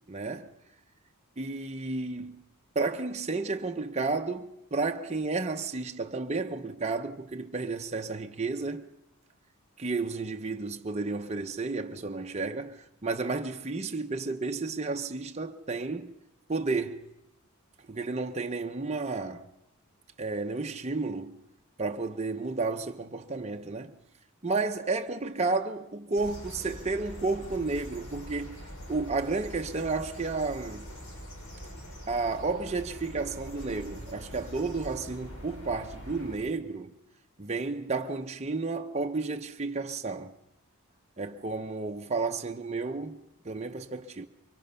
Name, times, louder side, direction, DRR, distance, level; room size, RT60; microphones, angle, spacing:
voice 1, 0.1-0.5 1.4-2.4 2.7-8.9 9.8-16.1 16.5-17.0 17.9-19.5 20.2-21.4 21.8-23.9 24.4-28.6 28.9-30.9 32.1-36.9 37.4-40.3 41.2-44.3, right 3 dB, 30° right, 0.8 m, -32 dB
sound 1, 26.2-36.3, equal, 65° left, 6.1 m, -44 dB
24.0 x 23.5 x 5.7 m
head